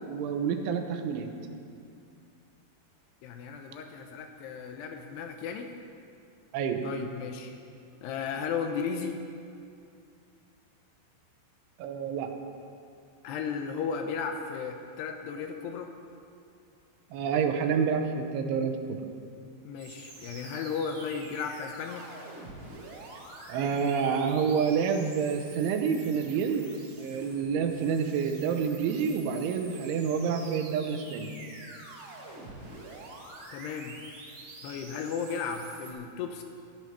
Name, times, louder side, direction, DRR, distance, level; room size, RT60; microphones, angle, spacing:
voice 1, 0.1-1.3 6.5-6.9 11.8-12.3 17.1-19.0 23.5-26.7 27.0-31.3, right 6 dB, 85° right, 5 dB, 3.3 m, -28 dB
voice 2, 3.2-5.7 6.8-7.5 8.0-9.2 13.2-15.9 19.6-22.1 33.5-34.0 34.6-36.4, left 6 dB, 80° left, 5 dB, 2.5 m, -35 dB
sound 1, 19.8-35.9, right 2 dB, 50° right, 4.3 m, -47 dB
14.5 x 11.0 x 6.0 m, 2.5 s
omnidirectional pair, 5.4 m